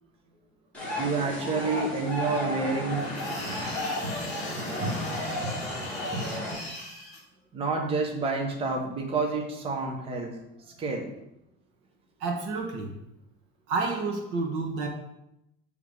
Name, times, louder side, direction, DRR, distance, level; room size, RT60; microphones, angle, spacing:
sound 1, 0.7-6.5, left 1 dB, 5° left, 2.1 m, -32 dB
voice 1, 1.0-3.1 7.5-10.3 10.8-11.1, right 4 dB, 25° right, 0 dB, 0.9 m, -29 dB
sound 2, 2.9-7.2, left 2 dB, 30° left, 2.4 m, -40 dB
voice 2, 12.2-12.9 13.7-14.9, right 3 dB, 70° right, 3 dB, 1.4 m, -29 dB
6.9 x 3.6 x 6.2 m, 0.84 s
cardioid pair, 180°, 21 cm